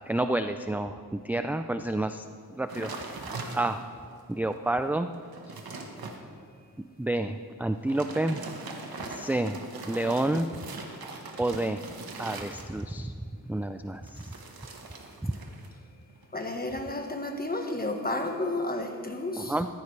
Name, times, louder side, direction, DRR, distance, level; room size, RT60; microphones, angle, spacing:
voice 1, 0.1-3.1 3.5-3.8 4.3-5.1 7.0-8.4 9.1-9.6 9.9-10.5 11.4-11.8 12.2-13.1 13.5-14.3 15.2-15.3 19.4-19.7, right 1 dB, 5° right, 8 dB, 0.3 m, -29 dB
sound 1, 2.7-4.0 4.5-4.6 5.1-6.2 7.7-13.0 14.0-15.7 16.0-16.4, right 3 dB, 90° right, 1.3 m, -41 dB
voice 2, 16.3-19.6, left 2 dB, 25° left, 4 dB, 1.3 m, -32 dB
14.5 x 14.0 x 3.3 m, 2.2 s
wide cardioid pair, 80°, 35 cm